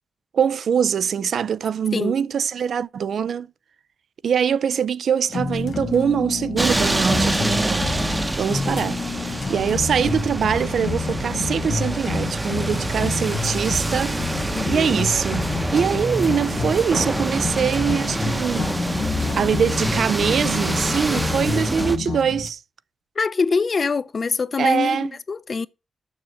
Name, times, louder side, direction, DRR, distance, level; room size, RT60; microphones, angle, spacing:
voice 1, 0.3-3.5 4.2-7.9 8.4-9.0 9.3-18.7 19.4-22.6 24.6-25.1, right 7 dB, 80° right, 0.4 m, -23 dB
sound 1, 5.3-22.5, left 5 dB, 65° left, 1.0 m, -29 dB
sound 2, 6.6-22.0, right 2 dB, 20° right, 0.7 m, -26 dB
voice 2, 14.5-14.9 23.2-25.7, left 4 dB, 50° left, 0.6 m, -24 dB
7.2 x 6.5 x 7.6 m
cardioid pair, 80°, 0 cm